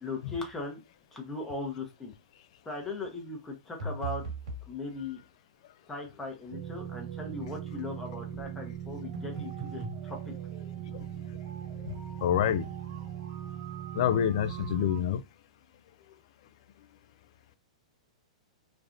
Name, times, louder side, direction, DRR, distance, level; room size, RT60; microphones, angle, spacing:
voice 1, 0.0-0.8 1.1-2.1 2.6-4.2 4.7-5.2 5.9-10.3, left 3 dB, 10° left, 0.8 m, -38 dB
sound 1, 3.8-4.7 9.1-10.0, right 3 dB, 80° right, 1.7 m, -38 dB
sound 2, 6.5-15.0, right 10 dB, 35° right, 0.6 m, -39 dB
voice 2, 12.2-12.7 14.0-15.2, left 10 dB, 60° left, 0.3 m, -26 dB
3.3 x 2.3 x 2.5 m
hypercardioid pair, 135°, 4 cm